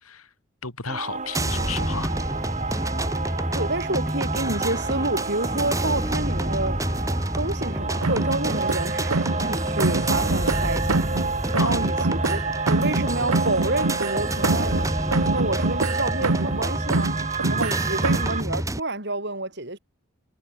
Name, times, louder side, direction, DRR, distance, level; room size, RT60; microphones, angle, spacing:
voice 1, 0.6-2.1 11.5-11.7, left 5 dB, 80° left, 4.1 m, -33 dB
sound 1, 0.9-18.4, right 4 dB, 30° right, 4.2 m, -31 dB
sound 2, 1.3-18.8, right 1 dB, 15° right, 4.6 m, -28 dB
voice 2, 3.5-6.8 7.4-11.1 11.6-12.4 12.7-14.9 15.3-17.1 17.5-19.8, right 2 dB, 50° right, 7.2 m, -29 dB
sound 3, 8.0-9.5 9.8-11.3 11.5-14.9 15.1-16.6 16.9-18.4, right 3 dB, 85° right, 1.3 m, -26 dB
head